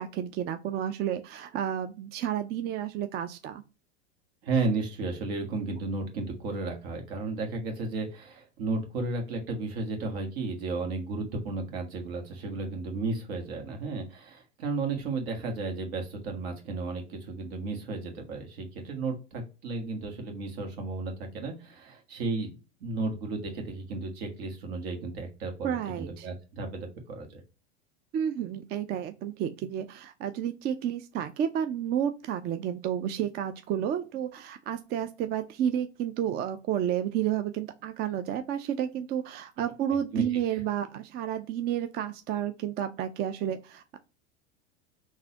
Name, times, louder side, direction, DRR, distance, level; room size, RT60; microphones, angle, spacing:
voice 1, 0.0-3.6 25.6-26.3 28.1-44.0, right 9 dB, 30° right, 9 dB, 0.4 m, -31 dB
voice 2, 4.4-22.5 22.8-27.4 39.9-40.2, right 3 dB, 65° right, 3 dB, 1.5 m, -33 dB
3.9 x 2.6 x 2.8 m, 0.31 s
hypercardioid pair, 95°, 34 cm